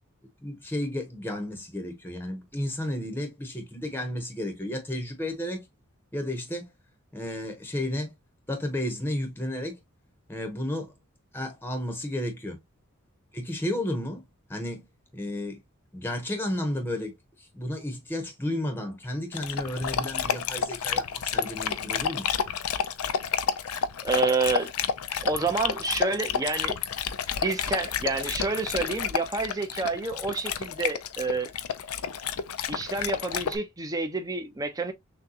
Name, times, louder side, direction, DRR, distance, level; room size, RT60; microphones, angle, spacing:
voice 1, 0.4-5.6 6.1-6.7 7.1-8.1 8.5-9.8 10.3-10.9 11.3-12.6 13.3-14.2 14.5-14.8 15.1-15.6 15.9-22.3, left 1 dB, 10° left, 0.9 m, -32 dB
Dog, 19.3-33.6, left 7 dB, 90° left, 0.5 m, -30 dB
voice 2, 24.0-24.7 25.2-26.8 27.4-31.5 32.7-34.9, right 3 dB, 15° right, 0.7 m, -29 dB
6.3 x 2.3 x 2.7 m
head